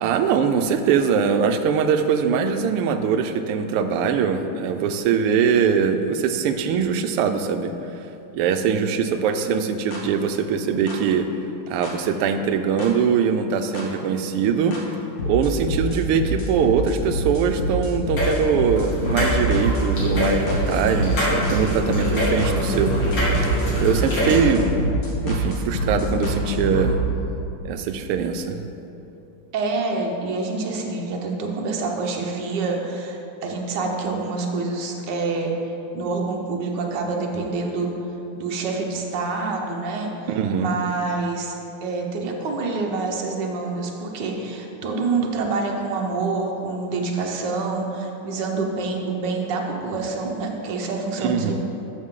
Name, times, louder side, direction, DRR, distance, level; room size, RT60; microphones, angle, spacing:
voice 1, 0.0-7.7 8.3-11.3 11.7-14.8 15.3-22.9 23.8-24.7 25.2-27.0 27.6-28.6 40.3-40.7 51.2-51.5, right 6 dB, 90° right, 8 dB, 1.6 m, -22 dB
voice 2, 8.6-9.0 29.5-35.5 35.9-37.9 38.3-41.5 41.8-51.5, right 3 dB, 60° right, 1 dB, 1.5 m, -27 dB
sound 1, 9.9-10.0 10.9-11.0 11.8-11.9 12.8-12.9 13.8-13.9 14.7-14.8 15.2-27.0, right 1 dB, 45° left, 1.7 m, -25 dB
sound 2, 18.2-18.3 18.6-24.4, left 1 dB, 65° left, 3.1 m, -26 dB
12.5 x 6.6 x 3.7 m, 2.9 s
omnidirectional pair, 2.4 m